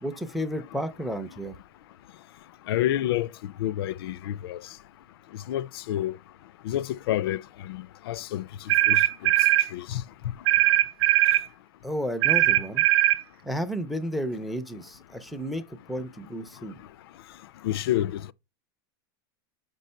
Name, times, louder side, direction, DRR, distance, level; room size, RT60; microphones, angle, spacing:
voice 1, 0.0-1.6 11.8-12.8 13.4-16.8, equal, ahead, 0.4 m, -32 dB
voice 2, 2.7-3.3 3.6-4.6 5.5-6.1 6.6-8.4 8.9-9.0 9.7-10.0 17.6-18.3, left 12 dB, 75° left, 0.4 m, -28 dB
sound 1, 8.7-9.7 10.5-11.4 12.2-13.2, right 15 dB, 75° right, 0.6 m, -20 dB
6.4 x 5.3 x 5.4 m
supercardioid pair, 175°, 13 cm